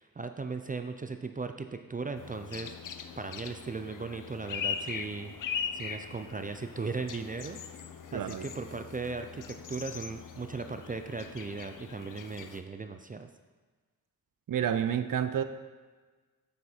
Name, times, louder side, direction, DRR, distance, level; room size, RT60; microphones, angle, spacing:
voice 1, 0.0-2.7 3.2-5.3 5.7-7.6 8.1-13.3, right 4 dB, 25° right, 7 dB, 0.4 m, -37 dB
sound 1, 2.2-12.6, left 7 dB, 65° left, 0.6 m, -40 dB
voice 2, 8.1-8.5 14.5-15.4, right 9 dB, 65° right, 10 dB, 0.6 m, -29 dB
8.2 x 7.0 x 4.3 m, 1.4 s
wide cardioid pair, 140°, 35 cm